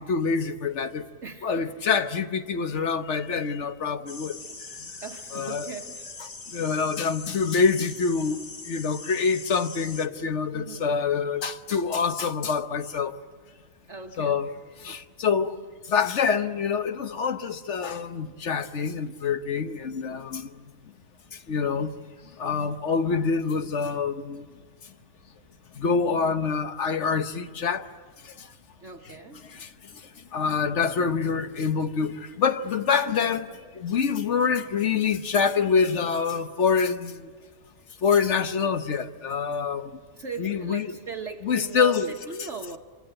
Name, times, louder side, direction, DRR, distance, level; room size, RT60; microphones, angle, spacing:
voice 1, 0.0-1.0 1.4-4.4 5.3-5.7 6.5-8.4 8.7-13.2 14.2-14.5 14.8-15.6 15.9-20.5 21.5-21.9 22.4-24.4 25.8-27.9 28.4-28.5 29.5-29.7 30.3-37.3 38.0-39.9 40.4-40.9 41.4-42.1, left 5 dB, 50° left, 1.2 m, -26 dB
voice 2, 1.2-2.0 5.0-6.0 10.5-10.9 13.9-14.4 19.8-20.2 28.8-29.4 40.1-42.8, right 5 dB, 50° right, 1.4 m, -39 dB
sound 1, 4.1-10.1, left 3 dB, 30° left, 1.1 m, -41 dB
28.0 x 24.5 x 7.8 m
omnidirectional pair, 1.6 m